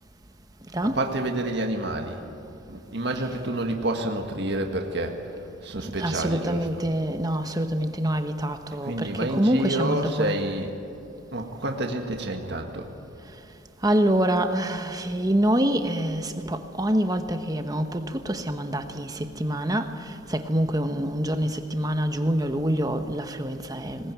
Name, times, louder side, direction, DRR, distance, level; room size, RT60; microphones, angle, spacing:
voice 1, 0.8-2.2 2.7-5.2 5.6-6.8 8.7-10.7 11.3-12.9, right 1 dB, 55° right, 1.7 m, -29 dB
voice 2, 6.0-10.3 13.8-20.0 20.3-24.1, right 1 dB, 20° right, 1.1 m, -26 dB
20.5 x 19.0 x 9.3 m
head